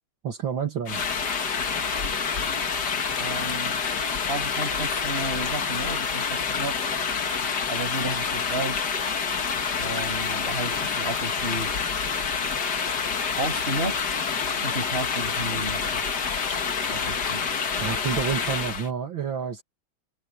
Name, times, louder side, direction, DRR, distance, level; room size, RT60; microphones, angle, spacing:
voice 1, 0.2-1.0 17.8-19.6, right 7 dB, 65° right, 2.7 m, -29 dB
sound 1, 0.9-18.9, left 5 dB, 55° left, 2.2 m, -27 dB
voice 2, 3.2-3.7 4.3-6.8 7.7-8.8 9.8-11.7 13.3-14.0 14.6-16.0 16.9-17.4, right 1 dB, 25° right, 7.6 m, -32 dB
omnidirectional pair, 2.3 m